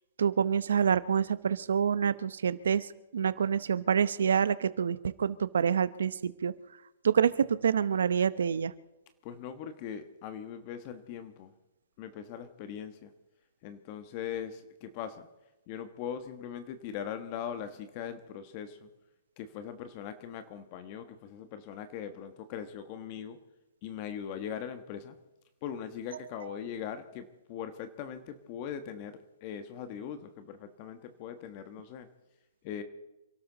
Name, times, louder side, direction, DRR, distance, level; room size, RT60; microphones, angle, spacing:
voice 1, 0.2-2.9 3.1-6.5 7.0-8.7, right 7 dB, 80° right, 16 dB, 0.9 m, -27 dB
voice 2, 9.2-11.5 12.0-13.1 13.6-15.3 15.7-18.9 19.4-23.4 23.8-25.1 25.6-32.1 32.6-32.8, left 8 dB, 35° left, 10 dB, 1.3 m, -40 dB
28.0 x 12.5 x 4.0 m, 0.99 s
hypercardioid pair, 150°, 0 cm